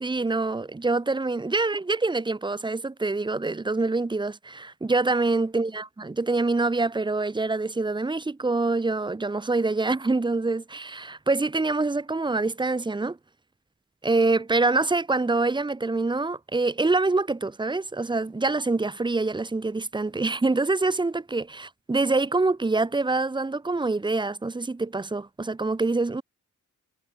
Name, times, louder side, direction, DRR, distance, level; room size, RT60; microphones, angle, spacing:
voice 1, 0.0-13.2 14.0-26.2, right 3 dB, 15° right, 0.7 m, -25 dB
wide cardioid pair, 125°, 31 cm